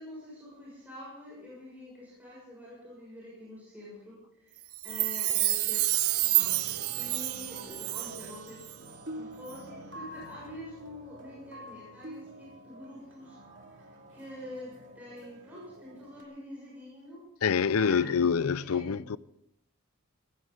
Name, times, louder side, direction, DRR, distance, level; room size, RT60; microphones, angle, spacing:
voice 1, 0.0-5.9 6.2-8.7 9.1-13.4 13.7-17.2 17.7-19.0, left 1 dB, 5° right, 6.6 m, -46 dB
Chime, 4.7-8.4 8.6-8.7, right 18 dB, 80° right, 0.6 m, -29 dB
sound 1, 5.9-16.2, right 1 dB, 55° right, 2.5 m, -48 dB
voice 2, 17.4-19.2, left 6 dB, 75° left, 0.5 m, -26 dB
19.5 x 16.0 x 3.9 m
head